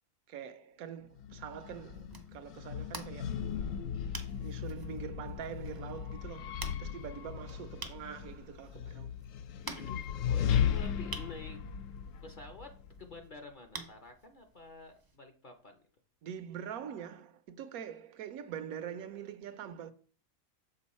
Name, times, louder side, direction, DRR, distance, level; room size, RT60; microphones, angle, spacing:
voice 1, 0.3-2.1 2.3-3.5 4.4-9.1 16.2-19.9, right 8 dB, 80° right, 1.1 m, -44 dB
sound 1, 1.2-13.3, left 8 dB, 70° left, 0.9 m, -36 dB
sound 2, 1.9-15.2, right 3 dB, 30° right, 0.4 m, -50 dB
voice 2, 9.7-11.6 12.2-12.7 13.0-15.8, left 3 dB, 45° left, 0.7 m, -49 dB
6.8 x 5.4 x 4.2 m
omnidirectional pair, 1.5 m